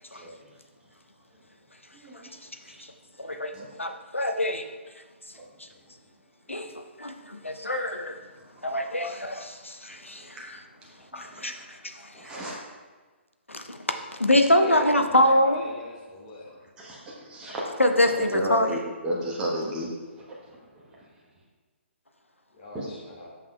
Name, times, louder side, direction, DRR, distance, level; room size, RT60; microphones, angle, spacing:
voice 1, 1.9-2.8 3.2-3.7 5.3-5.5 8.5-8.8 9.9-10.4 10.8-11.6 12.1-12.6 16.5-17.6 18.0-21.1 22.7-22.9, equal, 10° right, -4 dB, 0.9 m, -35 dB
voice 2, 3.2-3.5 3.8-4.7 6.5-8.2 8.6-10.4 11.1-12.1 13.5-13.8 14.2-15.6 17.8-18.7, left 1 dB, 85° left, 6 dB, 0.6 m, -24 dB
voice 3, 14.6-16.5 22.5-23.3, left 2 dB, 40° left, -4 dB, 1.8 m, -39 dB
7.3 x 5.8 x 2.2 m, 1.3 s
figure-of-eight pair, 130°, 7 cm